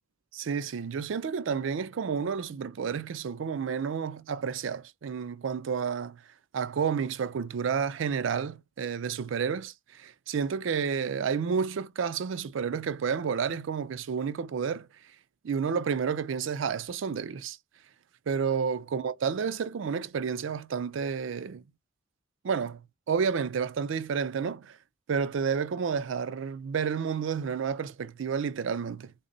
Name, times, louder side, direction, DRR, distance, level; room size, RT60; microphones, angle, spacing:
voice 1, 0.3-6.2 6.5-14.9 15.4-17.6 18.3-21.6 22.4-24.8 25.1-29.1, right 6 dB, 75° right, 0.4 m, -30 dB
3.5 x 2.1 x 3.8 m
head